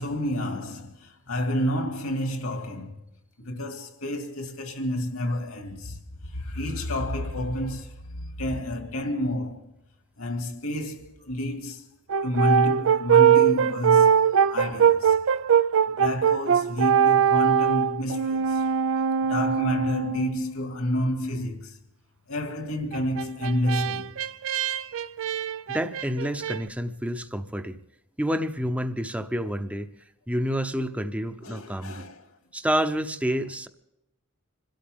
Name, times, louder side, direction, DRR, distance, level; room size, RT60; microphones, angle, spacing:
voice 1, 0.0-3.0 3.4-9.7 10.2-11.9 12.2-14.2 14.5-15.2 15.9-18.7 19.2-21.8 22.3-24.1 31.4-32.3, left 1 dB, 80° left, 2.3 m, -29 dB
Brass instrument, 12.1-20.4 22.9-26.6, right 8 dB, 65° right, 0.5 m, -22 dB
voice 2, 25.7-27.8 28.2-29.9 30.3-32.1 32.5-33.7, equal, 5° right, 0.8 m, -28 dB
26.5 x 13.0 x 3.7 m
head